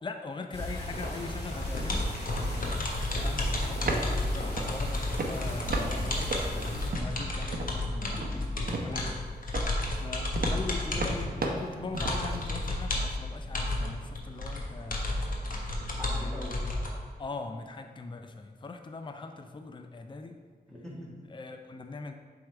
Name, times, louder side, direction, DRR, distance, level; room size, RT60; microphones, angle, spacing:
voice 1, 0.0-6.2 6.5-6.6 6.9-8.2 8.8-9.2 9.9-15.0 16.1-16.4 17.2-20.4 21.3-22.1, left 3 dB, 30° left, 6 dB, 0.5 m, -41 dB
sound 1, 0.5-6.9, left 1 dB, 85° left, 1.9 m, -36 dB
sound 2, 1.6-16.9, left 2 dB, 55° left, 1.0 m, -32 dB
sound 3, 3.9-4.2 4.6-4.9 5.2-5.9 6.2-7.3 7.5-7.8 8.1-9.2 9.5-12.4, right 2 dB, 65° right, 0.8 m, -33 dB
voice 2, 5.5-6.3 7.9-9.0 15.7-16.6 20.7-21.2, left 1 dB, 5° left, -7 dB, 1.6 m, -43 dB
6.6 x 3.6 x 4.4 m, 1.5 s
wide cardioid pair, 70°, 17 cm